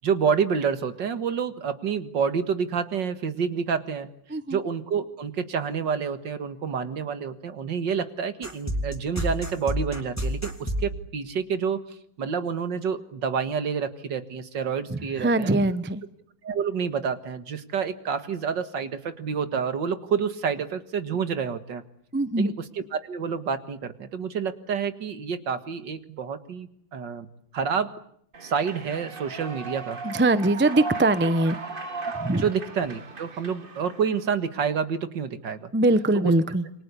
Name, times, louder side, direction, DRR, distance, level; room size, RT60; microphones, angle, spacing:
voice 1, 0.0-4.1 4.5-15.5 16.4-21.8 22.4-27.3 27.5-27.9 28.4-30.0 32.0-35.7 36.1-36.3, right 6 dB, 65° right, 11 dB, 2.2 m, -28 dB
sound 1, 8.4-10.9, equal, 5° left, 3.1 m, -28 dB
voice 2, 14.9-16.0 22.1-22.5 30.0-31.6 32.2-32.4 35.7-36.6, right 2 dB, 10° right, 13 dB, 0.5 m, -22 dB
Human voice / Clapping / Cheering, 28.3-34.3, right 4 dB, 30° right, 1.5 m, -37 dB
28.0 x 25.0 x 8.4 m, 0.68 s
omnidirectional pair, 2.2 m